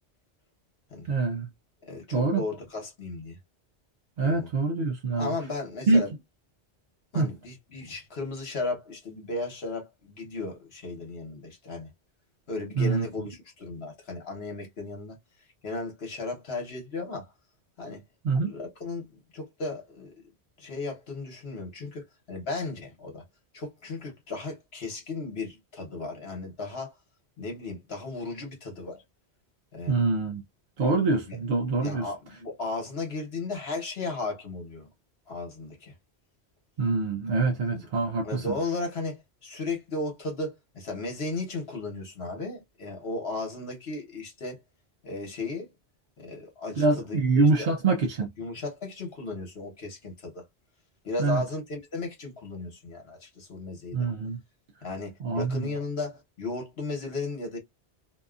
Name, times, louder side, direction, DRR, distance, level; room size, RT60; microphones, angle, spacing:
voice 1, 1.1-1.5 2.1-2.4 4.2-5.3 5.9-6.0 7.1-7.3 12.8-13.1 18.2-18.5 29.9-30.4 30.8-32.1 36.8-38.6 46.8-48.3 51.2-51.4 53.9-54.4 55.2-55.7, right 3 dB, 60° right, 0.6 m, -25 dB
voice 2, 1.8-3.4 4.2-4.5 5.2-6.1 7.1-11.9 12.5-15.2 15.6-17.3 17.8-18.0 18.4-20.1 20.6-23.2 23.5-26.9 27.4-29.0 29.7-30.0 31.3-31.4 31.8-34.9 35.3-35.9 37.7-37.9 38.2-44.6 45.0-45.7 46.2-47.7 48.4-50.4 51.0-54.0 54.8-57.6, left 3 dB, 65° left, 1.3 m, -35 dB
2.7 x 2.3 x 2.3 m
omnidirectional pair, 1.1 m